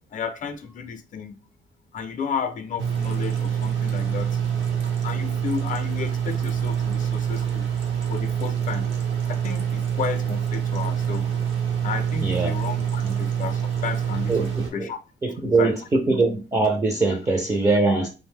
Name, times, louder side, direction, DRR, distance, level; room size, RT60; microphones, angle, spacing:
voice 1, 0.1-1.4 1.9-4.4 5.0-7.7 8.1-8.9 9.3-11.3 11.8-15.0 15.4-15.8, left 6 dB, 40° left, 0.5 m, -32 dB
sound 1, 2.8-14.7, right 8 dB, 75° right, 0.9 m, -26 dB
voice 2, 15.2-18.1, right 3 dB, 15° right, 0.4 m, -22 dB
2.6 x 2.1 x 3.5 m
cardioid pair, 90°, 20 cm